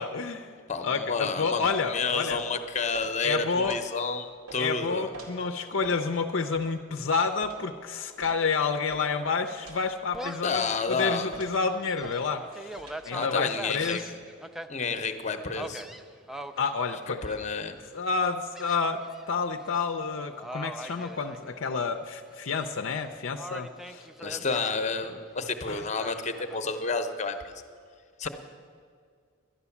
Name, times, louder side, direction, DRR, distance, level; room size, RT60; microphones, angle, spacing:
voice 1, 0.0-0.5 0.8-2.4 3.2-3.8 4.6-12.7 13.0-14.0 16.6-17.2 17.9-24.1 25.7-25.8, left 5 dB, 65° left, 5 dB, 0.5 m, -29 dB
voice 2, 0.7-5.1 10.4-11.4 13.1-14.0 14.7-15.8 17.2-17.8 24.2-27.6 28.2-28.3, left 4 dB, 35° left, 8 dB, 0.8 m, -30 dB
sound 1, 1.6-1.8 2.3-2.5 2.9-3.1 3.6-3.8 4.5-4.6 5.1-5.3 5.8-6.0 6.5-6.7 7.4-7.6 8.2-8.4 8.9-9.1 9.6-9.8 10.5-10.8 11.3-11.6 12.0-12.2 12.8-13.0, right 3 dB, 90° right, 2.4 m, -43 dB
Gull seagull, 10.1-10.6 11.1-11.2 11.7-14.7 15.6-16.7 17.2-17.7 18.5-19.2 19.6-19.8 20.4-21.9 22.3-23.0 23.4-24.7 26.0-27.0, right 1 dB, ahead, 0.3 m, -41 dB
11.5 x 11.0 x 7.1 m, 2.1 s
head